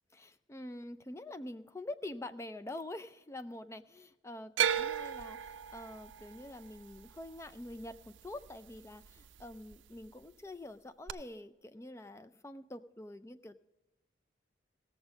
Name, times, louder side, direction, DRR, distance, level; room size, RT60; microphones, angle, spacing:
voice 1, 0.1-13.6, left 1 dB, 15° left, 11 dB, 0.4 m, -46 dB
sound 1, 4.6-8.8 9.0-9.7 11.1-11.2, right 9 dB, 85° right, 0.4 m, -35 dB
16.5 x 7.2 x 5.1 m, 1.0 s
head